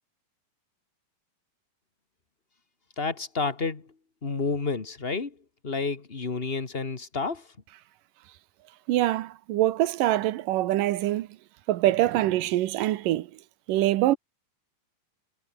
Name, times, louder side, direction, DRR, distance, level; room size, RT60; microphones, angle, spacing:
voice 1, 3.0-3.9 4.2-5.4 5.6-7.5, left 4 dB, 30° left, 1.2 m, -30 dB
voice 2, 8.9-11.3 11.7-13.3 13.7-14.2, right 15 dB, 75° right, 2.5 m, -24 dB
omnidirectional pair, 4.0 m